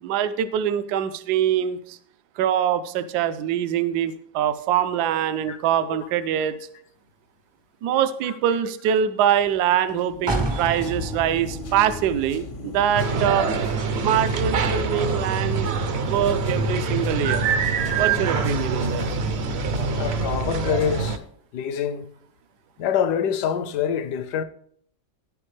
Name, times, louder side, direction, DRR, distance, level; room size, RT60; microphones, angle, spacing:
voice 1, 0.0-2.0 2.4-6.6 7.8-13.5 14.0-15.7 16.0-17.4 18.0-19.2, right 9 dB, 75° right, 1.1 m, -24 dB
sound 1, 9.3-9.6 9.9-21.1, left 5 dB, 55° left, 0.6 m, -34 dB
sound 2, 10.3-14.0 14.4-14.5, right 2 dB, 40° right, 0.3 m, -32 dB
sound 3, 12.9-21.2, right 5 dB, 60° right, 0.7 m, -25 dB
voice 2, 19.9-21.2 21.5-22.1 22.8-24.4, left 8 dB, 75° left, 1.2 m, -25 dB
10.5 x 8.6 x 3.2 m
omnidirectional pair, 1.8 m